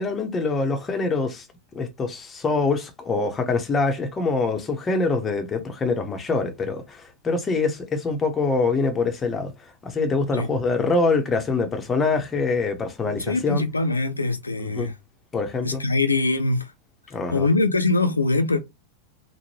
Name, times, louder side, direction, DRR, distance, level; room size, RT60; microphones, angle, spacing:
voice 1, 0.0-1.5 1.7-9.5 9.8-13.6 14.6-14.9 15.3-15.8 17.1-17.5, left 3 dB, 20° left, 0.7 m, -24 dB
voice 2, 13.0-14.9 15.6-16.7 17.3-18.6, left 3 dB, 80° left, 0.4 m, -23 dB
3.6 x 2.1 x 3.0 m
figure-of-eight pair, 90°, 0 cm